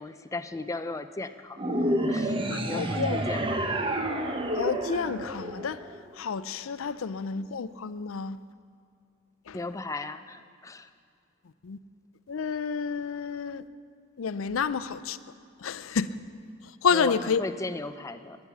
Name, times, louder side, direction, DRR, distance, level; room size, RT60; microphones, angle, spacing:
voice 1, 0.0-1.6 2.1-2.4 2.7-3.8 9.5-10.9 16.9-18.4, left 2 dB, 15° left, 0.5 m, -36 dB
sound 1, 1.6-6.1, right 1 dB, 25° right, 0.8 m, -29 dB
voice 2, 2.5-3.2 4.6-5.8 6.2-8.4 9.5-9.6 11.6-11.8 12.3-13.6 14.2-15.2 15.6-16.1 16.8-17.4, left 6 dB, 70° left, 0.5 m, -29 dB
15.5 x 9.8 x 7.1 m
head